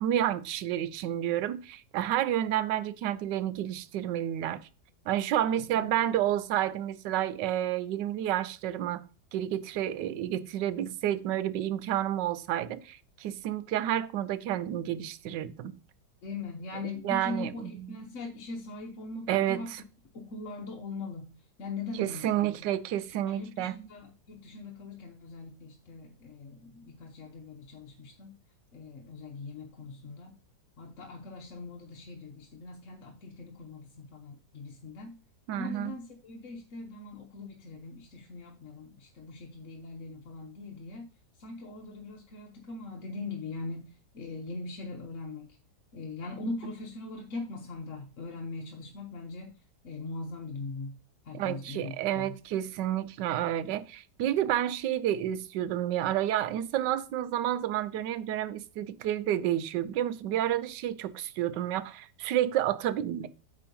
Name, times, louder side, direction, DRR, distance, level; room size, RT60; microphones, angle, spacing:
voice 1, 0.0-4.6 5.1-9.0 9.3-15.7 16.8-18.0 19.3-19.8 22.0-23.7 35.5-35.9 51.3-63.3, right 12 dB, 85° right, 1.3 m, -30 dB
voice 2, 5.5-6.2 16.2-19.7 20.1-21.3 21.6-22.8 23.3-28.3 28.7-30.4 30.8-35.1 35.5-41.0 41.4-45.6 45.9-49.6 49.8-51.0 51.2-52.3, left 3 dB, 50° left, 1.1 m, -41 dB
8.6 x 3.5 x 5.3 m
omnidirectional pair, 1.9 m